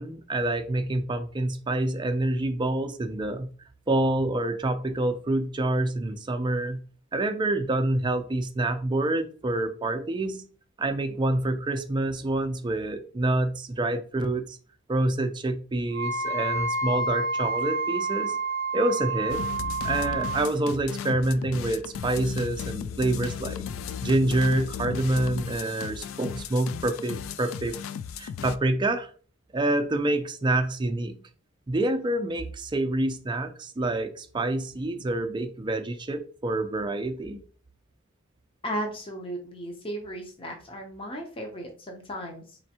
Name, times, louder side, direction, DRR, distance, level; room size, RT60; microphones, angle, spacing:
voice 1, 0.0-3.5 3.9-6.8 7.1-10.5 10.8-14.6 14.9-18.4 18.7-19.4 19.8-23.6 24.0-27.8 28.2-29.1 29.5-31.2 31.7-37.4, right 2 dB, 25° right, 7 dB, 0.4 m, -27 dB
Wind instrument woodwind instrument, 15.9-20.5, right 3 dB, 60° right, 0.7 m, -29 dB
sound 1, 19.3-28.6, left 7 dB, 75° left, 0.3 m, -35 dB
voice 2, 38.6-42.6, right 1 dB, 25° left, 2 dB, 0.7 m, -35 dB
4.3 x 3.1 x 2.8 m, 0.40 s
head